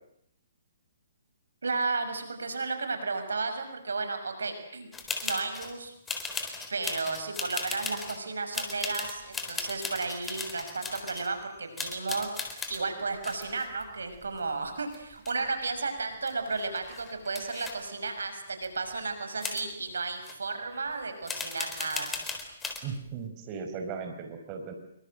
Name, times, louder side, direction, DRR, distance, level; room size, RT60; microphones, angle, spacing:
voice 1, 1.6-4.9 5.2-5.9 6.7-22.1, right 4 dB, 85° right, 8 dB, 6.3 m, -33 dB
sound 1, 4.9-5.7 6.1-8.2 8.5-11.3 11.8-12.8 13.2-14.7 14.9-15.7 16.0-16.1 16.3-17.7 18.6-18.7 19.4-19.6 20.2-20.3 21.3-22.8, left 4 dB, 10° left, 4.0 m, -37 dB
voice 2, 22.8-24.7, right 5 dB, 30° right, 6 dB, 4.8 m, -37 dB
26.5 x 24.0 x 7.9 m, 0.70 s
hypercardioid pair, 145°, 0 cm